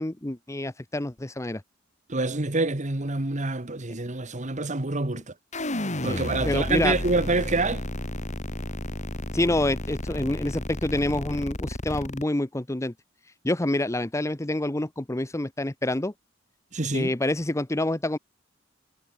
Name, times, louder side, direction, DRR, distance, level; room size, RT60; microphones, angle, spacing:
voice 1, 0.0-1.6 6.1-6.2 6.4-7.0 9.3-12.9 13.4-16.1 16.9-18.2, left 1 dB, 15° left, 0.8 m, -27 dB
voice 2, 2.1-5.2 6.0-7.8 16.7-17.1, right 2 dB, 40° right, 1.7 m, -26 dB
sound 1, 5.5-12.2, left 1 dB, 35° left, 3.8 m, -32 dB
head